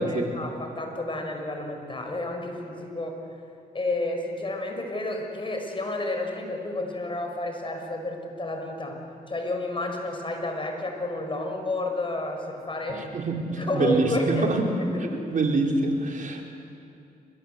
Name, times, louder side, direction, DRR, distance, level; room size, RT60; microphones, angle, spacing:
voice 1, 0.1-3.1 3.7-9.0 9.3-13.1 13.5-14.5 14.9-15.2, left 2 dB, 35° left, 3 dB, 6.1 m, -30 dB
voice 2, 13.1-14.6 15.3-16.4, right 2 dB, 60° right, 1 dB, 4.3 m, -25 dB
29.5 x 23.0 x 8.2 m, 2.6 s
cardioid pair, 80°, 15 cm